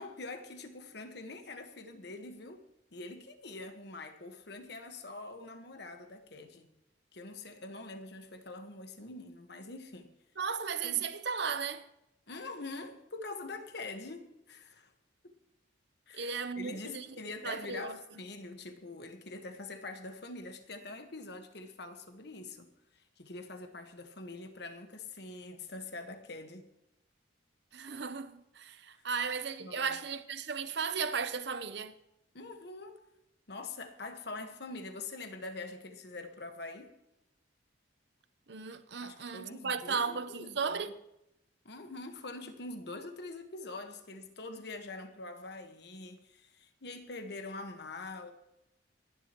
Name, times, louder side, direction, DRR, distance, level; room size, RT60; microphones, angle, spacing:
voice 1, 0.0-2.6 2.9-6.7 7.1-10.1 10.8-11.1 12.3-14.9 15.2-15.3 16.1-26.7 28.9-29.0 29.6-30.0 32.3-33.0 33.5-36.9 39.0-40.8 41.6-48.3, left 3 dB, 55° left, 1.3 m, -44 dB
voice 2, 10.4-11.8 16.1-17.1 17.4-18.0 27.7-31.9 38.5-40.9, right 5 dB, 60° right, 0.8 m, -35 dB
26.5 x 10.5 x 3.0 m
head